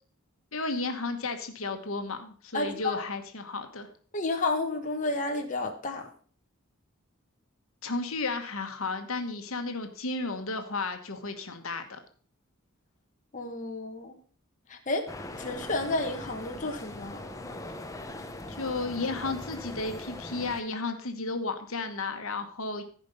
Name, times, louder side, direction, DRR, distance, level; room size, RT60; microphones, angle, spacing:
voice 1, 0.5-3.9 7.8-12.0 18.5-22.8, left 3 dB, 70° left, 6 dB, 1.4 m, -33 dB
voice 2, 2.5-3.0 4.1-6.1 13.3-14.2 14.7-15.1 15.4-17.2, left 2 dB, 35° left, 2 dB, 1.3 m, -31 dB
sound 1, 15.1-20.6, left 1 dB, 15° left, 0.8 m, -40 dB
15.0 x 5.3 x 5.4 m, 0.43 s
head